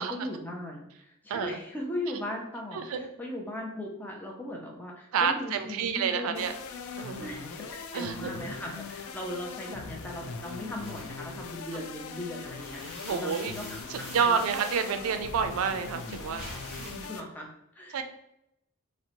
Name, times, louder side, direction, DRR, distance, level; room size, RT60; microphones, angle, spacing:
voice 1, 0.0-6.4 7.2-13.6 13.9-14.4 16.8-17.5 17.7-18.0, left 1 dB, 10° left, -1 dB, 0.3 m, -38 dB
voice 2, 1.3-1.6 2.7-3.1 5.1-6.5 7.0-7.3 7.9-8.3 9.7-9.8 13.0-13.5 13.9-17.1 17.9-18.0, right 6 dB, 85° right, 8 dB, 0.3 m, -29 dB
sound 1, 6.3-17.2, left 5 dB, 80° left, 0.3 m, -41 dB
sound 2, 10.8-12.0 12.4-17.1, left 1 dB, 55° left, 0.9 m, -45 dB
2.6 x 2.0 x 2.8 m, 0.81 s
head